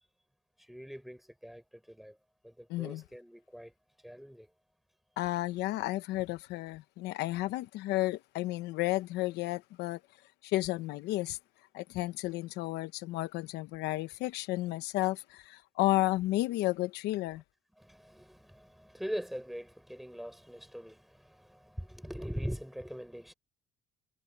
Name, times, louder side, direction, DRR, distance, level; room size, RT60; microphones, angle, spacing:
voice 1, 0.6-2.2 2.4-3.7 4.0-4.5 17.8-23.3, equal, ahead, 6.0 m, -42 dB
voice 2, 2.7-3.0 5.2-10.0 10.4-11.4 11.7-17.4, left 17 dB, 90° left, 0.9 m, -32 dB
cardioid pair, 110°, 17 cm